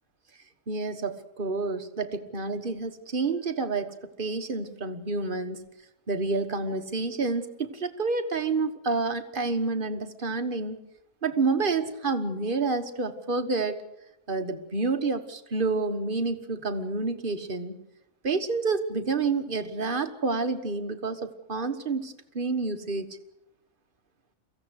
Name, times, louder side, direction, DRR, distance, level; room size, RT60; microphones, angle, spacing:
voice 1, 0.7-5.6 6.1-10.8 11.2-13.8 14.3-17.8 18.2-23.1, right 3 dB, 40° right, 8 dB, 1.5 m, -29 dB
23.5 x 15.5 x 8.0 m, 0.88 s
omnidirectional pair, 1.4 m